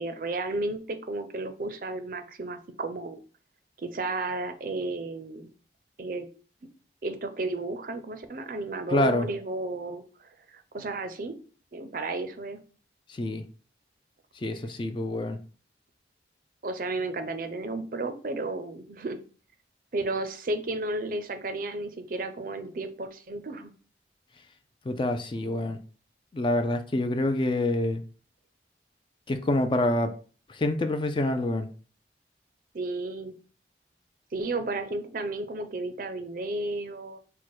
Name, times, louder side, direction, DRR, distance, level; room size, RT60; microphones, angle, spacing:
voice 1, 0.0-3.2 3.8-5.5 6.0-6.3 7.0-10.0 10.5-11.4 11.7-12.6 16.6-19.2 19.9-23.7 32.7-33.4 34.3-37.2, right 2 dB, 50° right, 0.5 m, -33 dB
voice 2, 8.9-9.3 13.1-13.4 14.4-15.4 24.9-25.8 26.3-28.0 29.3-30.1 30.5-31.7, left 1 dB, 25° left, 0.3 m, -26 dB
4.6 x 2.2 x 4.4 m
head